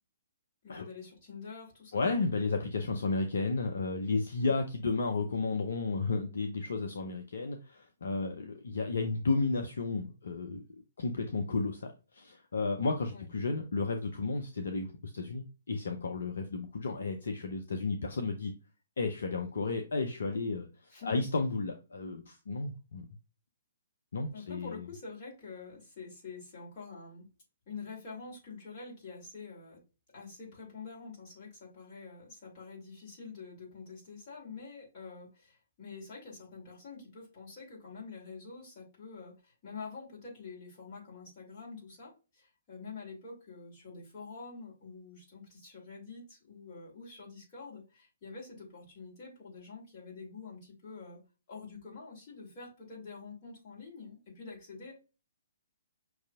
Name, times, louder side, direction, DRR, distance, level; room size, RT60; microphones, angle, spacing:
voice 1, 0.6-2.1 4.4-4.5 13.1-13.3 20.9-21.3 24.3-27.3 27.7-29.8 30.1-51.2 51.5-54.9, left 4 dB, 30° left, -5 dB, 2.4 m, -47 dB
voice 2, 1.9-10.6 11.0-18.5 19.0-20.7 21.0-23.1 24.1-24.8, left 3 dB, 60° left, 5 dB, 0.6 m, -33 dB
6.0 x 2.7 x 2.4 m, 0.31 s
figure-of-eight pair, 125°, 0 cm